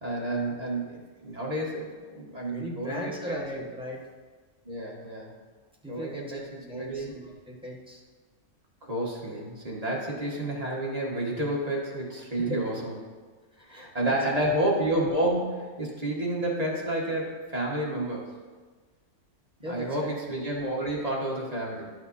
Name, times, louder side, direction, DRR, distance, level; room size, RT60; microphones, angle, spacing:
voice 1, 0.0-3.4 4.6-5.3 5.9-7.1 8.8-13.0 13.6-18.3 19.6-21.8, right 1 dB, 30° right, -4 dB, 1.6 m, -30 dB
voice 2, 2.5-4.0 5.8-8.0 12.4-12.6 13.7-14.5 19.6-20.2, equal, 5° right, -5 dB, 1.2 m, -38 dB
11.0 x 6.0 x 2.7 m, 1.4 s
omnidirectional pair, 1.3 m